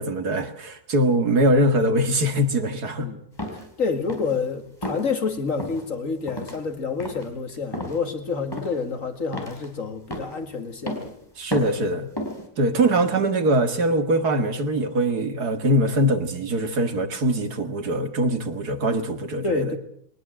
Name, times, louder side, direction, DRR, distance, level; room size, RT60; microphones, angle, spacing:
voice 1, 0.0-3.1 11.4-12.1 12.6-19.8, right 1 dB, 85° right, 8 dB, 2.6 m, -22 dB
sound 1, 3.4-3.7 4.1-4.4 4.8-5.1 5.6-5.8 6.3-6.6 7.0-7.3 7.7-8.0 8.5-8.9 9.3-9.7 10.1-10.4 10.9-11.1 11.5-11.8 12.2-12.4, left 1 dB, 15° left, 4.4 m, -32 dB
voice 2, 3.8-11.1 19.4-19.8, left 4 dB, 55° left, 7 dB, 2.6 m, -28 dB
22.5 x 19.5 x 7.7 m, 0.67 s
omnidirectional pair, 1.6 m